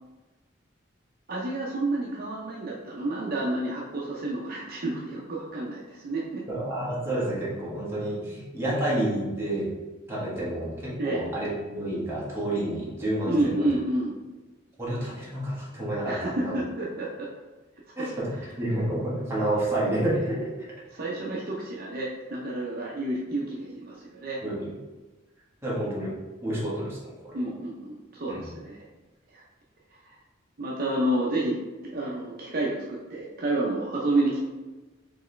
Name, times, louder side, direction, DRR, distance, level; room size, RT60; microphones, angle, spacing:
voice 1, 1.3-6.4 11.0-11.2 13.3-14.1 16.1-17.3 18.0-18.1 18.4-18.5 20.9-24.4 27.3-28.8 29.3-29.4 30.6-31.6 31.8-34.4, right 1 dB, 50° right, -3 dB, 0.6 m, -29 dB
voice 2, 6.5-9.7 10.1-13.7 14.8-16.5 18.0-20.5 24.4-24.7 25.6-26.2 26.4-27.4 28.3-28.4, right 1 dB, 15° right, -7 dB, 1.3 m, -29 dB
4.7 x 3.0 x 3.2 m, 1.2 s
head